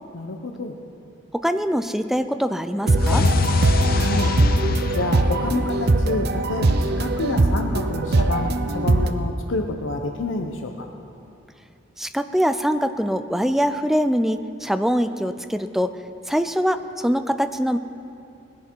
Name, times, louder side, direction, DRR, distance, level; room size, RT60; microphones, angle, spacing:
voice 1, 0.1-0.7 3.9-4.4 4.9-10.9, left 2 dB, 80° left, 3 dB, 0.8 m, -28 dB
voice 2, 1.3-3.2 12.0-15.9 16.3-17.8, equal, ahead, 10 dB, 0.4 m, -23 dB
sound 1, 2.8-9.1, right 2 dB, 55° right, 0.6 m, -21 dB
sound 2, 3.0-6.1, left 3 dB, 50° left, 0.5 m, -23 dB
19.5 x 11.0 x 4.6 m, 2.7 s
head